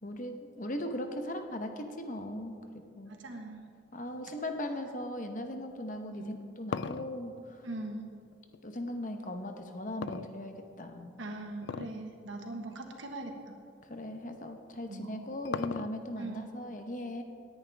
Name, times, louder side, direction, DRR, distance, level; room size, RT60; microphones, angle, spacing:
voice 1, 0.0-3.1 3.9-7.6 8.6-11.2 13.8-17.2, left 1 dB, 45° left, 5 dB, 1.0 m, -39 dB
voice 2, 3.1-3.6 6.2-6.3 7.6-8.1 11.2-13.6 14.9-15.1 16.2-16.4, right 2 dB, 90° right, 3 dB, 1.5 m, -41 dB
sound 1, 6.2-8.6 10.0-10.9 11.6-12.0 12.4-12.5 13.2-13.4 14.7-16.2, left 6 dB, 70° left, 0.4 m, -38 dB
18.0 x 10.0 x 3.5 m, 2.3 s
head